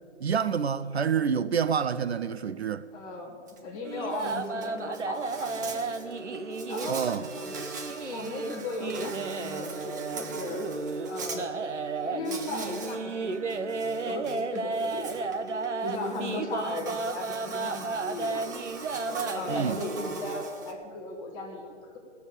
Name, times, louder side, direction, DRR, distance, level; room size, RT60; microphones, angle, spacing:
voice 1, 0.2-2.9 6.9-7.3 19.5-19.8, right 7 dB, 65° right, 0.6 m, -27 dB
voice 2, 2.9-3.4 3.6-7.0 7.3-7.6 7.9-10.6 11.1-11.6 12.0-15.2 15.8-18.5 19.1-22.0, left 2 dB, 15° left, 1.6 m, -37 dB
Insect, 3.5-3.6 3.9-11.4 12.2-13.0 13.3-20.7, right 4 dB, 15° right, 0.6 m, -42 dB
sound 1, 3.8-20.4, right 3 dB, 85° right, 1.0 m, -33 dB
17.0 x 7.1 x 8.4 m
figure-of-eight pair, 155°, 35 cm